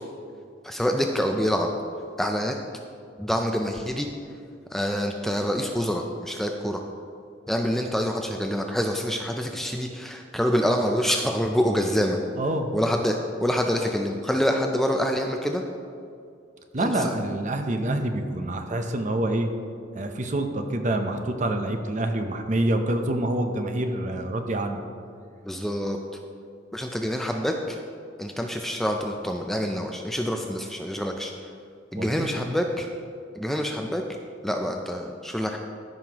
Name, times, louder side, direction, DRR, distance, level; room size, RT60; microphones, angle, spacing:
voice 1, 0.6-1.7 2.2-2.6 3.2-4.1 4.7-6.8 7.5-12.2 12.7-15.6 16.8-17.1 25.5-26.0 26.7-27.8 28.2-31.3 31.9-32.9 33.4-34.0 34.4-35.6, equal, ahead, 3 dB, 0.3 m, -26 dB
voice 2, 12.4-12.8 16.7-19.5 19.9-24.8 31.9-32.3, right 1 dB, 40° right, 6 dB, 0.6 m, -26 dB
14.0 x 5.6 x 2.9 m, 2.4 s
head